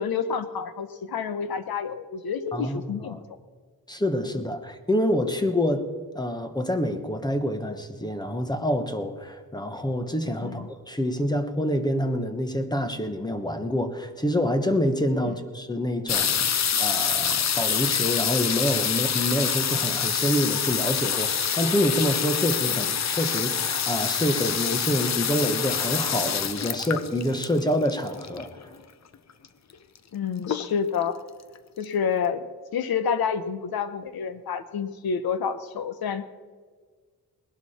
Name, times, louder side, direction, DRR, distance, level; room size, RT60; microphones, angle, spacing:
voice 1, 0.0-3.2 10.4-10.7 15.2-15.4 22.7-22.9 30.1-31.2 31.8-32.5 32.7-36.2, left 6 dB, 80° left, 12 dB, 1.1 m, -29 dB
voice 2, 2.5-3.2 3.9-5.9 6.1-16.5 16.8-28.7, equal, 10° left, 8 dB, 1.1 m, -27 dB
sound 1, 16.1-28.6 29.4-29.5 29.7-30.1 30.4-31.0 31.6-31.7 31.8-31.9, left 7 dB, 50° left, 0.7 m, -26 dB
20.0 x 11.5 x 4.3 m, 1.5 s
wide cardioid pair, 145°, 36 cm